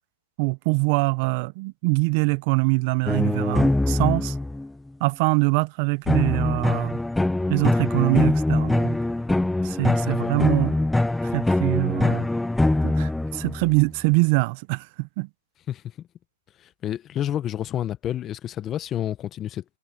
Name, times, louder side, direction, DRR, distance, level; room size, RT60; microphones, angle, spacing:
voice 1, 0.4-4.4 5.0-7.0 7.5-9.0 9.6-10.8 11.2-12.3 12.8-15.3, right 29 dB, 40° right, 0.8 m, -24 dB
sound 1, 3.1-4.7 6.1-13.8, left 2 dB, 5° left, 0.3 m, -23 dB
voice 2, 10.1-10.4 15.7-16.1 16.6-19.6, left 11 dB, 20° left, 0.9 m, -30 dB
hypercardioid pair, 145°, 0 cm